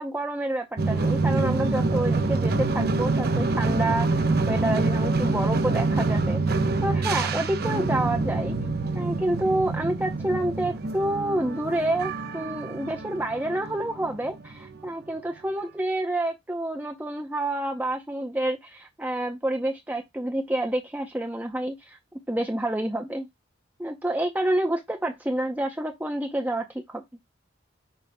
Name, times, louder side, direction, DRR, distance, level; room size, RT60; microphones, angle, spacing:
voice 1, 0.0-8.5 8.9-22.0 22.3-23.3 23.8-27.0, right 1 dB, 10° right, 0.6 m, -28 dB
sound 1, 0.8-14.9, right 3 dB, 50° right, 0.8 m, -26 dB
8.4 x 5.6 x 2.2 m
head